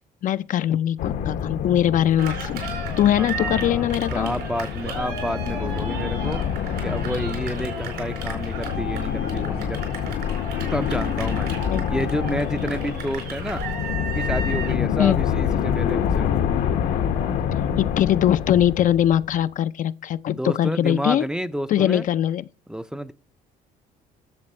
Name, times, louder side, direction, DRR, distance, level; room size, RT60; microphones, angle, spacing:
voice 1, 0.2-2.6 3.0-4.3 11.7-11.8 15.0-15.2 17.8-21.2 21.7-22.4, left 11 dB, 50° left, 0.4 m, -21 dB
sound 1, 1.0-19.4, left 8 dB, 85° left, 1.3 m, -27 dB
Cheering, 2.2-14.8, right 5 dB, 80° right, 4.6 m, -35 dB
voice 2, 3.2-6.5 6.8-9.8 10.7-11.5 11.9-13.6 14.0-16.4 20.3-22.0 22.7-23.1, equal, 5° right, 0.5 m, -30 dB
11.0 x 7.1 x 4.3 m
cardioid pair, 110°, 17 cm